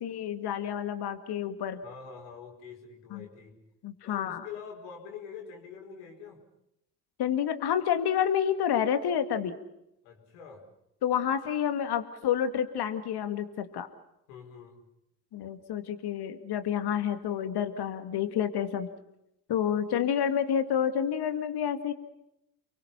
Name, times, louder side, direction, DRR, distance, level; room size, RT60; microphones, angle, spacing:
voice 1, 0.0-1.8 3.1-3.3 3.8-4.5 7.2-9.6 11.0-13.9 15.3-18.9 19.5-21.9, left 9 dB, 55° left, 9 dB, 2.2 m, -29 dB
voice 2, 1.8-3.6 4.0-6.4 10.0-10.7 14.3-14.8, left 6 dB, 75° left, 2 dB, 5.2 m, -45 dB
30.0 x 23.0 x 5.7 m, 0.83 s
hypercardioid pair, 55°, 47 cm